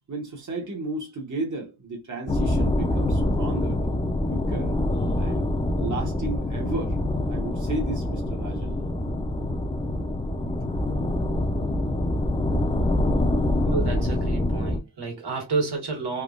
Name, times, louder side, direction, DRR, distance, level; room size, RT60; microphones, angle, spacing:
voice 1, 0.1-3.8 4.3-5.5 5.8-7.0 7.2-8.7, right 3 dB, 50° right, 1.2 m, -34 dB
sound 1, 2.3-14.8, left 1 dB, 15° left, 0.6 m, -25 dB
voice 2, 13.6-16.2, right 4 dB, 85° right, 1.8 m, -30 dB
3.6 x 2.9 x 2.5 m
wide cardioid pair, 140°, 39 cm